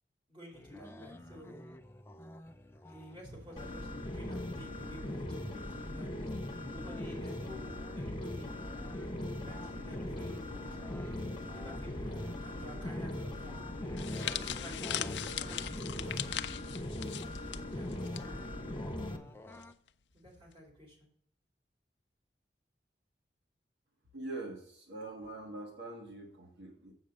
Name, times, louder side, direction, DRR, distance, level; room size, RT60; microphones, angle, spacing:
voice 1, 0.3-1.6 2.8-5.6 5.9-6.4 6.8-8.5 9.4-13.5 14.1-16.5 17.2-19.4 20.1-21.1, equal, 30° right, -2 dB, 4.1 m, -52 dB
sound 1, 0.5-19.7, left 1 dB, 15° left, 0.5 m, -51 dB
sound 2, 3.6-19.2, left 1 dB, 30° left, 1.0 m, -40 dB
sound 3, 14.0-18.2 18.5-18.7 19.6-19.9, left 11 dB, 85° left, 0.5 m, -39 dB
voice 2, 24.1-26.9, right 2 dB, 80° right, 0 dB, 1.7 m, -43 dB
8.0 x 6.4 x 5.3 m, 0.66 s
head